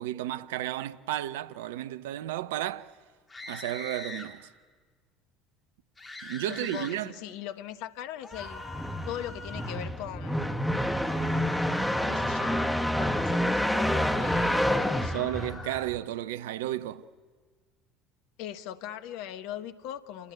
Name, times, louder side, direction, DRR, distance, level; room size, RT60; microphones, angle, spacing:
voice 1, 0.0-2.9 3.5-4.5 6.2-7.1 15.1-17.1, right 14 dB, 70° right, 0.7 m, -33 dB
sound 1, 3.3-4.3 6.0-7.0 8.2-9.8 11.0-12.7 13.8-15.9, left 2 dB, 20° left, 4.2 m, -43 dB
voice 2, 6.5-8.6 9.1-11.5 12.0-15.3 18.4-20.3, left 11 dB, 65° left, 1.2 m, -40 dB
sound 2, 8.4-16.0, equal, 5° left, 1.7 m, -28 dB
27.5 x 19.5 x 9.2 m
figure-of-eight pair, 65°, 0 cm